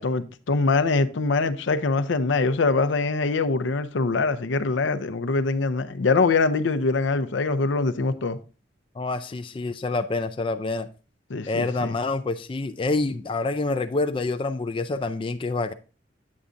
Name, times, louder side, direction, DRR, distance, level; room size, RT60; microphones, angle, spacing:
voice 1, 0.0-8.4 11.3-11.9, left 3 dB, 80° left, 0.6 m, -23 dB
voice 2, 9.0-10.9 11.5-15.7, left 3 dB, 30° left, 0.4 m, -27 dB
8.6 x 8.1 x 2.5 m
head